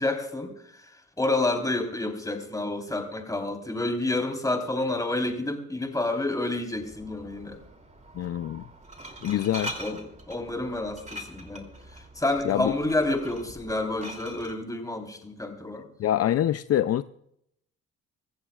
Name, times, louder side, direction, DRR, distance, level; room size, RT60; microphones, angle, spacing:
voice 1, 0.0-7.6 9.8-10.0 10.3-15.9, left 2 dB, 10° left, 3 dB, 3.8 m, -29 dB
Glass, 6.7-14.5, equal, 25° right, 2.9 m, -43 dB
voice 2, 8.1-8.6 9.2-9.7 12.4-12.7 16.0-17.0, left 11 dB, 55° left, 12 dB, 0.5 m, -25 dB
25.0 x 14.5 x 2.4 m, 0.73 s
cardioid pair, 90°, 30 cm